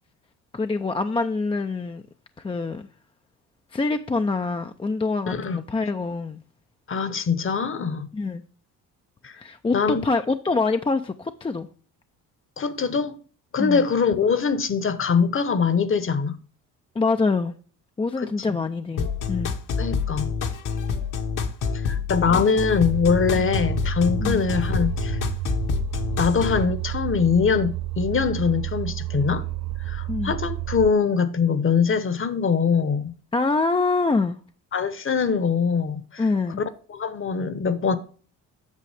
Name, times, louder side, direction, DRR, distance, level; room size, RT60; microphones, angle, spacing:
voice 1, 0.5-2.0 2.4-2.9 3.7-6.4 8.1-8.4 9.4-11.7 13.6-13.9 17.0-17.5 18.0-19.5 22.3-22.4 23.4-23.5 24.2-24.5 30.1-30.4 33.3-34.4 36.2-36.6, left 3 dB, 15° left, 0.4 m, -25 dB
voice 2, 5.3-5.6 6.9-8.1 9.2-9.3 9.7-10.0 12.6-13.2 13.5-16.4 18.2-18.6 19.8-20.3 21.7-25.2 26.2-29.4 29.9-33.1 34.7-36.2 36.9-38.0, left 6 dB, 35° left, 1.0 m, -23 dB
sound 1, 19.0-26.7, left 5 dB, 55° left, 1.1 m, -27 dB
sound 2, 22.8-30.9, right 17 dB, 50° right, 0.5 m, -31 dB
8.4 x 6.1 x 3.4 m
cardioid pair, 90°, 37 cm